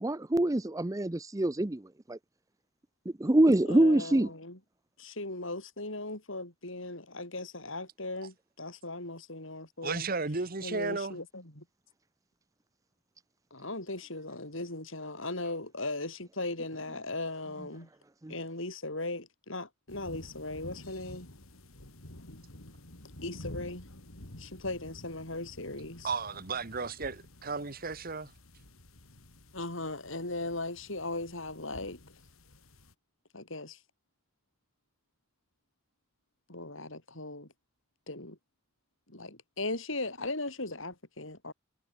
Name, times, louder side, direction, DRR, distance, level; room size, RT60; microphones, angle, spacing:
voice 1, 0.0-1.8 2.1-2.2 3.2-4.3 18.2-18.3, right 1 dB, 15° right, 0.6 m, -25 dB
voice 2, 3.6-4.6 5.0-10.1 10.6-11.6 13.5-17.9 18.3-21.3 23.2-23.8 24.4-26.1 29.5-32.0 33.3-33.8 36.5-37.5 38.1-38.4 39.1-41.5, left 2 dB, 65° left, 6.2 m, -38 dB
voice 3, 9.8-11.2 26.0-28.3, right 4 dB, 45° right, 1.3 m, -34 dB
sound 1, 19.9-32.9, left 1 dB, 85° left, 3.8 m, -50 dB
head